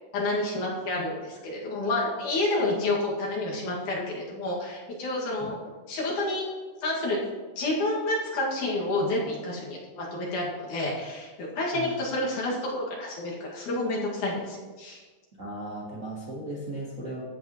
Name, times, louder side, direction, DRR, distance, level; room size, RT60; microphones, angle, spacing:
voice 1, 0.1-5.6 5.9-6.5 6.8-7.2 7.6-15.0, left 2 dB, 70° left, -4 dB, 3.4 m, -29 dB
voice 2, 15.4-17.2, right 1 dB, 40° right, -6 dB, 1.1 m, -36 dB
14.5 x 8.6 x 3.0 m, 1.4 s
omnidirectional pair, 3.7 m